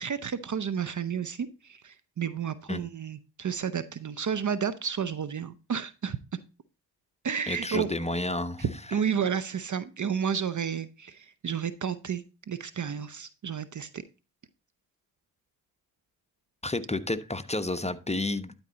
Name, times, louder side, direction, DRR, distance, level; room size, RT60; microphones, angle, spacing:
voice 1, 0.0-6.2 7.2-7.9 8.6-14.0, right 7 dB, 40° right, 15 dB, 0.7 m, -31 dB
voice 2, 7.5-8.6 16.6-18.5, left 2 dB, 15° left, 10 dB, 0.9 m, -30 dB
12.0 x 4.5 x 4.0 m, 0.32 s
hypercardioid pair, 40°, 48 cm